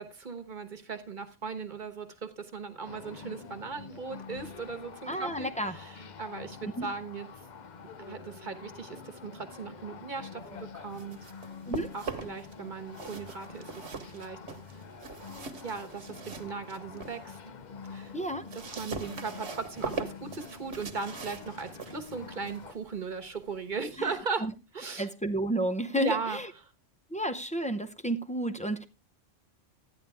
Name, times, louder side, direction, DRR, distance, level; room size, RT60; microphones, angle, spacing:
voice 1, 0.0-7.3 8.1-11.3 11.9-14.4 15.6-17.4 17.8-18.1 18.5-25.1 26.0-26.4, right 5 dB, 40° right, 1.2 m, -38 dB
sound 1, 2.8-22.7, left 5 dB, 45° left, 0.7 m, -46 dB
voice 2, 5.1-5.7 6.8-6.9 11.7-11.9 18.1-18.4 24.0-24.1 24.4-24.5 25.0-26.5 27.1-28.8, right 1 dB, 10° left, 0.4 m, -31 dB
sound 2, 10.7-12.5 12.9-17.2 17.6-24.2, right 4 dB, 60° right, 1.4 m, -42 dB
13.0 x 9.9 x 3.5 m
omnidirectional pair, 1.3 m